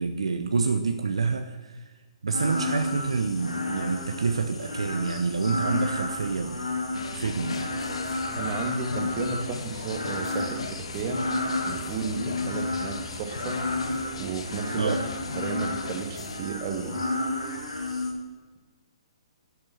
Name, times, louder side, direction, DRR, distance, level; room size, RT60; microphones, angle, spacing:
voice 1, 0.0-1.8 2.2-6.6 7.1-7.7 14.8-15.0, right 4 dB, 65° right, 7 dB, 0.8 m, -27 dB
sound 1, 2.3-18.1, left 2 dB, 80° left, 2.5 m, -32 dB
sound 2, 6.9-16.4, left 5 dB, 65° left, 1.1 m, -38 dB
voice 2, 8.3-11.2 11.6-13.6 14.2-15.0 15.3-17.0, right 5 dB, 35° right, 5 dB, 1.6 m, -33 dB
11.0 x 7.4 x 7.5 m, 1.4 s
figure-of-eight pair, 125°, 3 cm